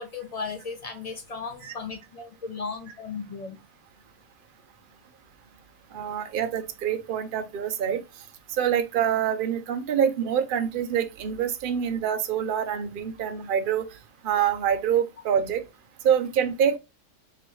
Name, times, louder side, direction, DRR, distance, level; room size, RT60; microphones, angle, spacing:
voice 1, 0.0-3.6, left 5 dB, 60° left, 0.4 m, -36 dB
voice 2, 5.9-8.0 8.5-13.8 14.2-15.6 16.0-16.8, right 8 dB, 80° right, 0.4 m, -26 dB
4.8 x 2.9 x 3.0 m
omnidirectional pair, 1.6 m